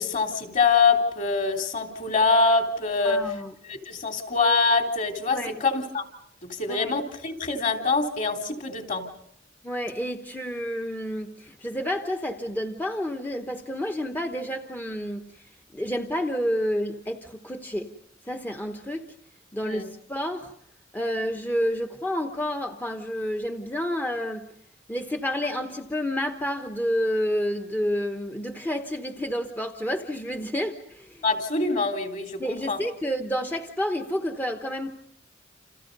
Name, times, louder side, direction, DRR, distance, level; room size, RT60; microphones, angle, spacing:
voice 1, 0.0-3.3 3.6-6.1 6.4-9.1 19.6-19.9 31.2-32.8, left 4 dB, 45° left, 4 dB, 3.4 m, -24 dB
voice 2, 3.0-3.5 5.3-5.6 6.8-6.9 9.6-15.5 15.7-17.9 18.3-19.0 19.5-20.5 20.9-24.5 24.9-31.2 32.4-34.9, equal, 10° left, 4 dB, 1.1 m, -29 dB
29.5 x 29.0 x 5.4 m, 0.70 s
head